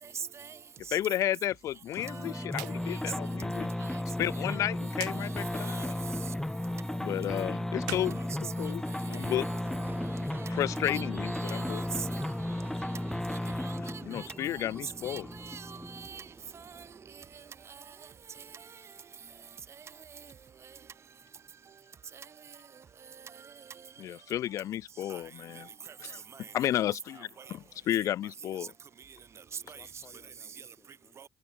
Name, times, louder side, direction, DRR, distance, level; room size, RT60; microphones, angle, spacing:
voice 1, 0.0-0.6 0.9-1.0 2.1-3.0 3.8-4.0 4.5-4.6 5.1-5.9 7.9-8.1 8.6-9.6 10.9-12.3 13.3-14.3 14.5-14.7 15.0-16.3 16.5-16.8 17.1-17.2 17.8-17.9 22.1-22.2 23.4-23.5 25.1-25.2 25.5-25.6 26.3-26.4 27.4-27.5 29.7-29.8 31.2-31.3, right 7 dB, 50° right, 6.5 m, -44 dB
voice 2, 0.9-3.9 4.2-6.0 7.0-8.2 8.6-8.8 9.1-9.4 10.5-11.8 13.8-15.3 24.0-25.7 26.0-28.7, left 12 dB, 60° left, 0.4 m, -33 dB
sound 1, 2.0-16.1, left 1 dB, 10° left, 0.9 m, -35 dB
sound 2, 2.5-2.8 3.1-3.2 4.9-5.2 7.7-9.1, right 25 dB, 80° right, 0.9 m, -42 dB
Subway metro underground, 9.3-20.0 20.4-21.1 21.4-21.5, right 4 dB, 35° right, 4.5 m, -50 dB
voice 3, 29.6-31.2, left 5 dB, 35° left, 4.6 m, -61 dB
hypercardioid pair, 50°, 6 cm